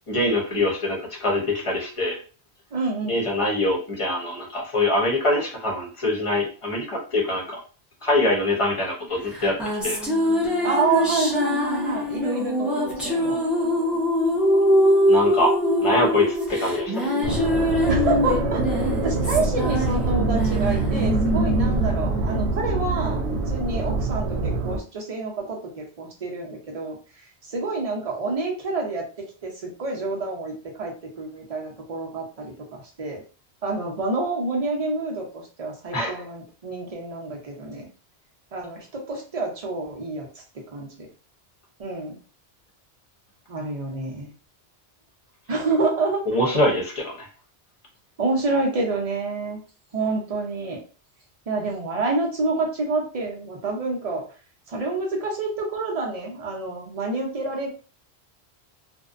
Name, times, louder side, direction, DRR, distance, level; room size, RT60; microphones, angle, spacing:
voice 1, 0.1-2.2 3.1-7.6 8.0-9.6 9.8-10.0 15.1-15.5 15.8-16.9 35.9-36.2 46.3-47.3, left 1 dB, 35° left, -1 dB, 0.8 m, -24 dB
voice 2, 2.7-3.2 10.6-13.4 17.9-27.0 27.4-29.1 29.4-33.2 33.6-37.9 38.5-40.3 40.5-41.1 41.8-42.2 43.5-44.3 45.5-46.2 48.2-49.6 49.9-50.8 51.5-54.2 54.7-57.7, right 3 dB, 40° right, 0 dB, 0.7 m, -28 dB
sound 1, 9.3-23.0, left 1 dB, ahead, 0.5 m, -23 dB
sound 2, 17.2-24.8, right 3 dB, 90° right, 0.9 m, -25 dB
2.6 x 2.1 x 2.4 m, 0.37 s
omnidirectional pair, 1.1 m